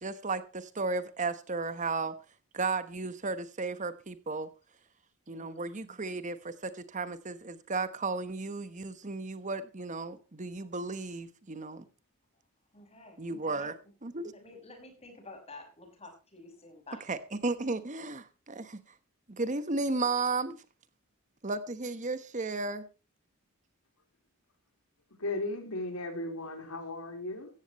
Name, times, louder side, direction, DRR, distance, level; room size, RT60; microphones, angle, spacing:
voice 1, 0.0-2.1 2.5-4.5 5.3-11.8 13.2-13.7 14.0-14.3 17.1-18.8 19.3-20.6 21.4-22.8, right 3 dB, 35° right, 12 dB, 1.1 m, -34 dB
voice 2, 5.3-5.7 12.7-13.9 14.3-17.1, left 2 dB, 30° left, 4 dB, 6.0 m, -51 dB
voice 3, 25.2-27.5, left 2 dB, 90° left, 5 dB, 4.2 m, -36 dB
16.0 x 14.5 x 3.1 m, 0.31 s
head